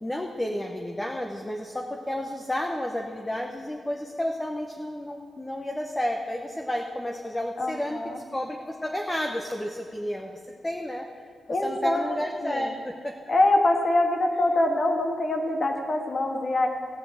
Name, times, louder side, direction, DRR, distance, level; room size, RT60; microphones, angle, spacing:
voice 1, 0.0-8.0 8.3-11.1 11.6-13.1, left 1 dB, 10° left, 2 dB, 0.9 m, -31 dB
voice 2, 7.6-8.2 11.5-12.7 13.3-16.7, left 2 dB, 40° left, 3 dB, 1.7 m, -24 dB
16.0 x 5.7 x 8.0 m, 2.2 s
wide cardioid pair, 125°, 0 cm